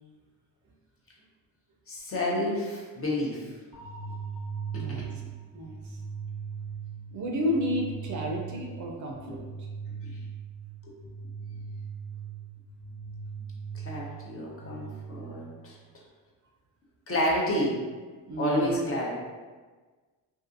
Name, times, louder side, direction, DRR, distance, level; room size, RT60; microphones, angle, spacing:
voice 1, 1.9-3.5 4.7-4.8 9.3-9.4 10.0-10.2 10.8-10.9 13.8-15.8 17.1-17.8 18.4-19.1, left 1 dB, 35° left, -4 dB, 0.8 m, -30 dB
sound 1, 3.7-15.7, right 6 dB, 15° left, 1.1 m, -39 dB
voice 2, 4.7-5.1 5.5-5.7 7.1-9.4 18.3-18.8, equal, 45° right, 0 dB, 0.5 m, -31 dB
2.6 x 2.5 x 2.5 m, 1.4 s
supercardioid pair, 85°, 40 cm